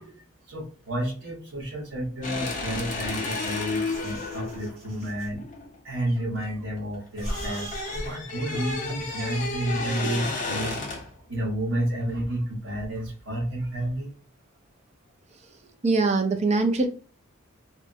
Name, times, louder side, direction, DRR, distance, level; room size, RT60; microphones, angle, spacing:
voice 1, 0.0-5.4 5.8-10.8 11.3-14.1, right 1 dB, 60° right, -3 dB, 1.3 m, -31 dB
sound 1, 2.2-6.5 6.8-11.2, left 3 dB, 35° left, 0.5 m, -32 dB
sound 2, 3.9-5.3 6.0-6.8 7.2-8.1 8.5-9.5, equal, 80° right, 1.3 m, -39 dB
voice 2, 15.8-16.9, right 3 dB, 30° right, 5 dB, 0.4 m, -23 dB
3.3 x 2.0 x 2.7 m, 0.38 s
head